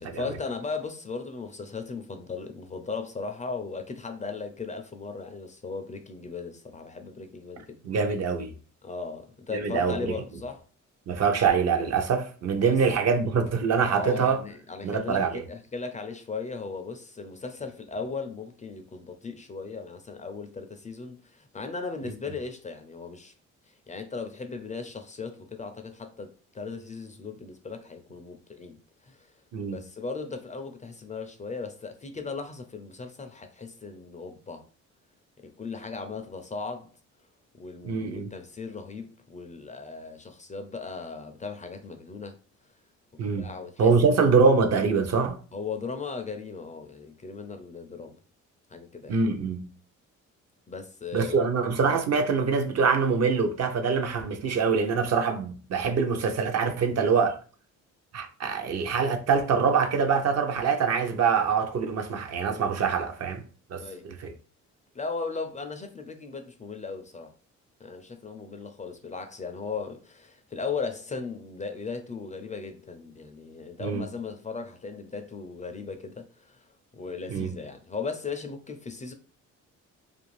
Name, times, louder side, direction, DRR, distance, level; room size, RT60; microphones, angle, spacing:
voice 1, 0.0-7.8 8.8-10.6 12.7-12.8 13.9-23.3 23.9-29.3 29.7-34.6 35.4-36.9 37.6-42.4 43.1-44.2 45.5-48.2 48.7-49.2 50.7-51.5 63.8-64.1 64.9-67.3 67.8-76.7 76.9-79.1, left 4 dB, 25° left, 0.4 m, -37 dB
voice 2, 7.8-8.5 9.5-10.1 11.1-14.4 14.8-15.4 29.5-29.8 37.8-38.3 43.2-43.5 43.8-45.4 49.1-49.7 51.1-57.4 58.1-63.4 63.7-64.3 73.8-74.1 77.3-77.5, right 5 dB, 55° right, 0.6 m, -24 dB
2.5 x 2.4 x 3.1 m
cardioid pair, 90°, 30 cm